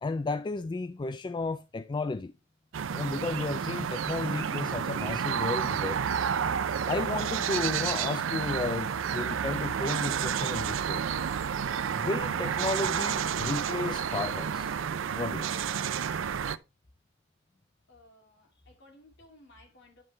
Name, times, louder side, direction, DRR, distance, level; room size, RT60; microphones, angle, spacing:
voice 1, 0.0-2.3 2.9-6.0 6.9-11.0 11.9-14.7 15.1-15.5, left 3 dB, 25° left, 0.3 m, -33 dB
sound 1, 2.7-16.6, right 7 dB, 90° right, 0.5 m, -30 dB
voice 2, 17.9-20.0, left 1 dB, 65° left, 2.8 m, -57 dB
9.7 x 5.3 x 3.2 m
head